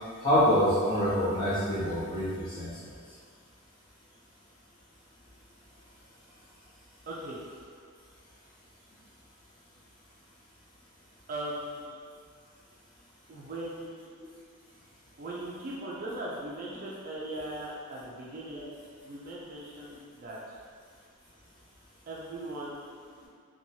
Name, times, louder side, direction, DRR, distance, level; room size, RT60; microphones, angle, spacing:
voice 1, 0.2-2.7 18.5-18.7, equal, 20° left, -12 dB, 1.0 m, -26 dB
voice 2, 7.1-7.4 11.3-12.0 13.3-14.1 15.2-18.7 19.0-20.6 22.1-22.8, right 1 dB, 40° right, -5 dB, 0.3 m, -39 dB
2.9 x 2.2 x 2.7 m, 2.1 s
head